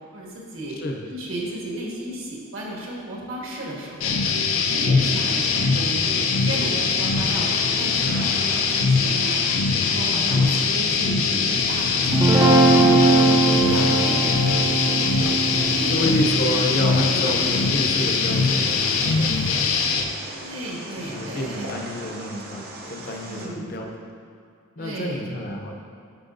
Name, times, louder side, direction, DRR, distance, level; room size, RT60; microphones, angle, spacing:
voice 1, 0.1-0.8 1.1-4.2 4.6-9.4 9.8-14.7 14.9-15.1 15.5-16.0 17.1-17.4 20.4-21.7 23.2-23.7 24.8-25.3, right 1 dB, 75° right, -4 dB, 1.4 m, -34 dB
sound 1, 4.0-20.0, left 5 dB, 80° left, 0.5 m, -22 dB
sound 2, 5.0-23.5, right 2 dB, 45° right, 0.7 m, -40 dB
Guitar, 12.1-18.4, right 2 dB, 15° right, 0.3 m, -21 dB
voice 2, 15.9-19.9 21.0-24.1 24.8-25.7, left 1 dB, 45° left, 2 dB, 0.7 m, -29 dB
10.5 x 5.7 x 2.6 m, 2.3 s
head